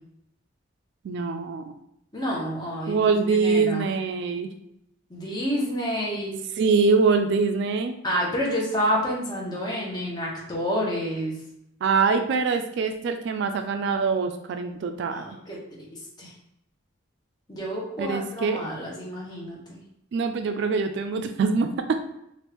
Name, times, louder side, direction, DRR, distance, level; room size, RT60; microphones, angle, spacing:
voice 1, 1.0-1.6 2.9-4.5 6.6-8.0 11.8-15.3 18.0-18.6 20.1-22.0, right 4 dB, 60° right, 7 dB, 0.3 m, -24 dB
voice 2, 2.1-3.8 5.1-6.4 8.0-11.4 15.1-15.9 16.2-16.3 17.5-19.8, equal, 20° left, -4 dB, 0.9 m, -29 dB
3.0 x 2.4 x 3.4 m, 0.79 s
head